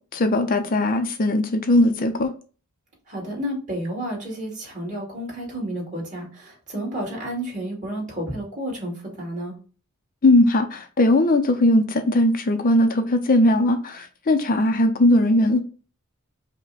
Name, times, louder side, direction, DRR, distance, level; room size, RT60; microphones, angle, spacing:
voice 1, 0.1-2.3 10.2-15.6, left 1 dB, 40° left, 0.5 m, -19 dB
voice 2, 3.1-9.6, right 1 dB, 40° right, 2.2 m, -31 dB
5.1 x 2.2 x 4.0 m
head